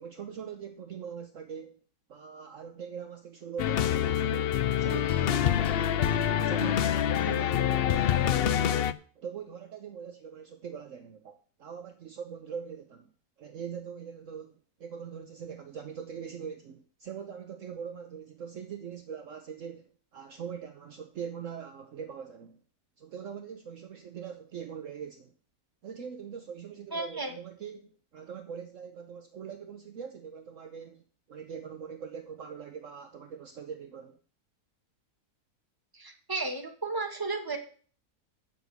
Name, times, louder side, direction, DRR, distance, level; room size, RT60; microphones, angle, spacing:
voice 1, 0.0-1.8 2.1-6.0 6.2-13.1 13.4-22.6 23.0-25.3 25.8-31.0 31.3-34.2, right 7 dB, 60° right, 1.1 m, -42 dB
sound 1, 3.6-8.9, left 10 dB, 85° left, 0.5 m, -26 dB
voice 2, 26.9-27.3 35.9-37.6, right 3 dB, 15° right, 1.6 m, -33 dB
8.1 x 6.3 x 7.9 m
omnidirectional pair, 1.7 m